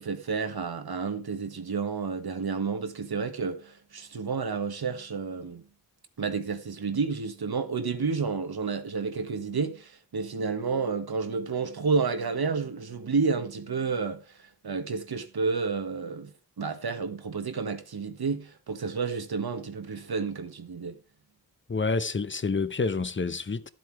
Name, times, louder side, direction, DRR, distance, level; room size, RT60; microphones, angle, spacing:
voice 1, 0.0-5.6 6.2-21.0, right 4 dB, 90° right, 1.5 m, -30 dB
voice 2, 21.7-23.7, left 4 dB, 35° left, 0.8 m, -28 dB
12.5 x 7.8 x 4.6 m
wide cardioid pair, 75°, 36 cm